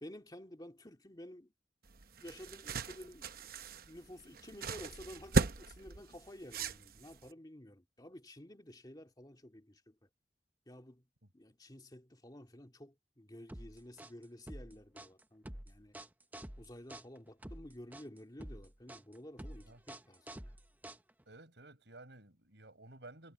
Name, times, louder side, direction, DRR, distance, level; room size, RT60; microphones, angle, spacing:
voice 1, 0.0-1.5 2.2-10.1 10.7-11.0 11.3-16.0 16.6-20.5, left 1 dB, 20° left, 2.2 m, -52 dB
sound 1, 1.9-7.3, right 3 dB, 55° right, 0.9 m, -37 dB
sound 2, 13.5-21.4, right 1 dB, 10° right, 0.8 m, -49 dB
voice 2, 21.3-23.3, right 2 dB, 75° right, 5.1 m, -54 dB
head